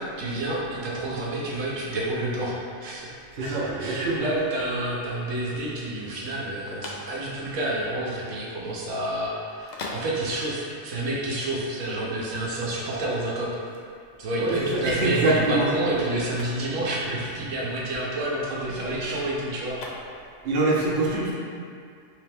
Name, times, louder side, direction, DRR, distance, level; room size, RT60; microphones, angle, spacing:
voice 1, 0.2-2.5 2.8-13.5 14.2-19.8, right 1 dB, 80° right, -5 dB, 1.1 m, -29 dB
voice 2, 3.3-4.2 14.4-15.7 20.4-21.3, right 2 dB, 55° right, -5 dB, 0.8 m, -24 dB
sound 1, 6.3-20.6, left 2 dB, 75° left, 0.4 m, -43 dB
3.3 x 3.2 x 3.3 m, 2.3 s
omnidirectional pair, 1.3 m